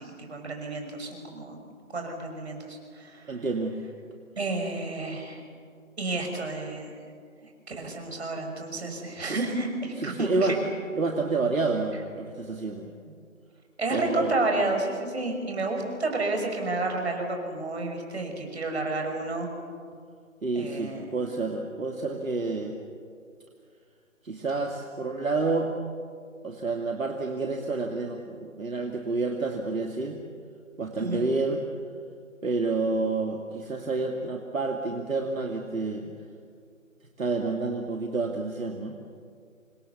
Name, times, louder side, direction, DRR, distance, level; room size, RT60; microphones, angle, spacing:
voice 1, 0.0-1.6 1.9-3.4 4.4-5.4 6.0-6.9 7.4-10.6 13.8-19.5 20.5-21.2 31.0-31.3, right 2 dB, 50° right, 3 dB, 6.0 m, -31 dB
voice 2, 3.3-3.8 9.3-9.4 10.0-10.6 11.0-12.9 13.9-14.4 20.4-22.7 24.2-25.7 26.4-30.2 30.8-31.6 32.4-36.1 37.2-39.0, right 3 dB, 70° right, 2 dB, 2.6 m, -29 dB
27.5 x 27.0 x 7.0 m, 2.2 s
figure-of-eight pair, 165°, 41 cm